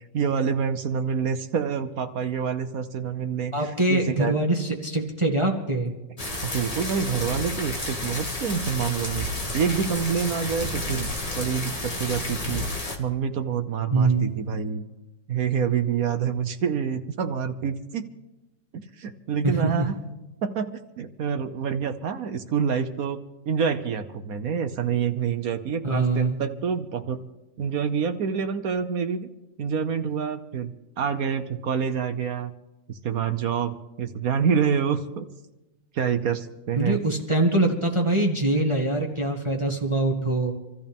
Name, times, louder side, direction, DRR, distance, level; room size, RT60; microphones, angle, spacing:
voice 1, 0.1-4.3 6.4-9.3 9.5-11.1 11.4-12.6 13.0-14.8 15.3-18.1 18.7-19.9 20.4-23.2 23.5-27.2 27.6-29.3 29.6-30.7 31.0-32.5 32.9-35.2 35.9-37.0, right 7 dB, 60° right, 8 dB, 1.0 m, -27 dB
voice 2, 3.5-5.9 13.9-14.3 19.4-19.9 25.8-26.4 36.8-40.5, right 2 dB, 15° right, 1 dB, 1.7 m, -23 dB
sound 1, 6.2-13.0, left 2 dB, 20° left, 1.6 m, -31 dB
26.5 x 14.0 x 3.6 m, 1.0 s
omnidirectional pair, 2.1 m